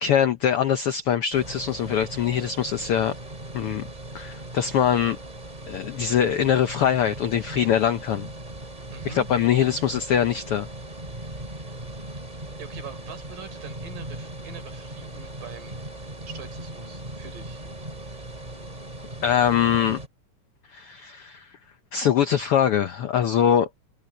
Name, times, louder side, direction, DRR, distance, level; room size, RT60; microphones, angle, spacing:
voice 1, 0.0-3.1 3.5-3.9 4.1-5.2 5.7-8.3 9.0-10.7 19.2-20.0 20.7-21.5 21.9-23.7, left 9 dB, 85° left, 1.2 m, -23 dB
sound 1, 1.3-20.1, right 1 dB, 15° right, 2.5 m, -39 dB
voice 2, 8.9-9.3 12.6-15.8 16.3-17.6, right 5 dB, 85° right, 5.7 m, -43 dB
omnidirectional pair, 3.7 m